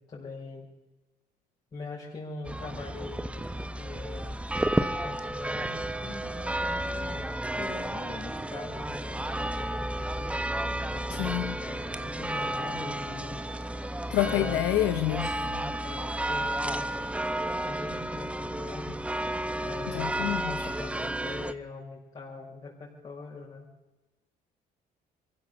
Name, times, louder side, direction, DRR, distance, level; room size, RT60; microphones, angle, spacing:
voice 1, 0.1-0.7 1.7-3.5 3.8-7.2 7.5-10.3 10.9-13.7 14.2-14.6 15.2-17.1 17.6-19.0 19.6-23.7, left 3 dB, 35° left, -6 dB, 5.6 m, -42 dB
sound 1, 2.4-21.5, right 1 dB, 5° right, 0.9 m, -32 dB
voice 2, 11.1-11.6 14.1-15.3 19.9-20.7, left 15 dB, 90° left, 10 dB, 0.8 m, -28 dB
23.5 x 16.0 x 7.0 m, 1.1 s
cardioid pair, 110°, 17 cm